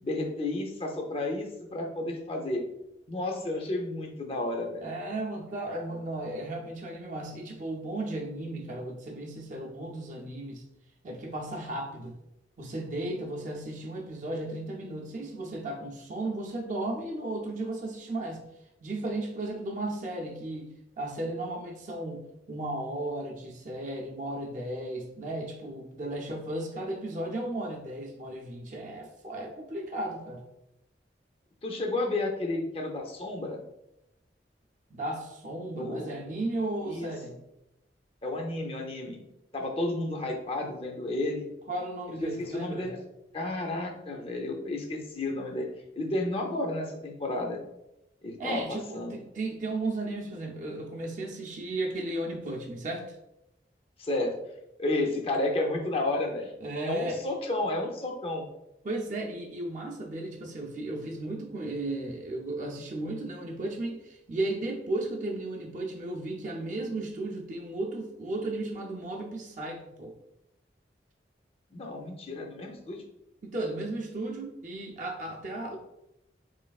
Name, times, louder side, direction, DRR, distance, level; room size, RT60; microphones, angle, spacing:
voice 1, 0.0-2.6 3.1-4.9 31.6-33.6 35.7-36.1 36.8-37.1 38.2-39.2 39.5-41.4 42.2-43.0 43.3-45.7 45.9-47.6 48.2-49.2 54.0-54.4 54.8-56.5 56.8-58.5 71.7-73.0, left 2 dB, 35° left, 2 dB, 0.5 m, -32 dB
voice 2, 4.8-10.6 11.0-12.1 12.6-18.4 18.8-30.4 34.9-37.4 41.7-42.9 48.4-53.2 56.6-57.3 58.8-70.1 73.4-75.8, right 2 dB, 45° right, 0 dB, 0.5 m, -35 dB
4.0 x 3.1 x 2.3 m, 0.86 s
head